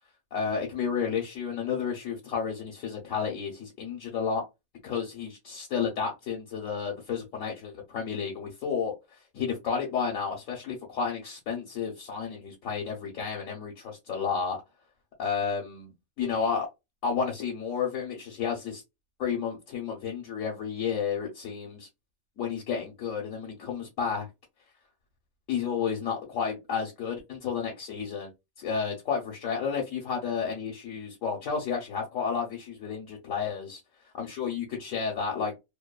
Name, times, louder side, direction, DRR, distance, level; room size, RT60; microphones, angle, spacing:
voice 1, 0.3-4.4 4.8-8.9 9.3-14.6 15.2-15.9 16.2-16.7 17.0-18.8 19.2-21.9 22.4-24.3 25.5-28.3 28.6-33.8 34.2-35.5, left 6 dB, 70° left, 1.0 m, -31 dB
2.7 x 2.2 x 2.2 m
omnidirectional pair, 1.5 m